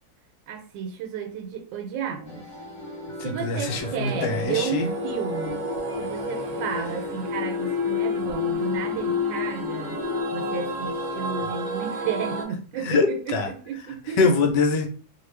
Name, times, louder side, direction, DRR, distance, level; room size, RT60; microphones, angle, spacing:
voice 1, 0.5-2.5 3.2-5.7 6.0-10.0 10.3-14.3, right 7 dB, 80° right, 5 dB, 1.3 m, -32 dB
sound 1, 2.2-10.2, left 1 dB, 45° left, 1.2 m, -39 dB
voice 2, 3.2-4.9 12.8-13.5 14.2-14.9, left 4 dB, 75° left, 4 dB, 1.2 m, -23 dB
sound 2, 3.7-12.4, left 3 dB, 60° right, 0.4 m, -29 dB
3.0 x 2.2 x 3.2 m, 0.43 s
omnidirectional pair, 2.0 m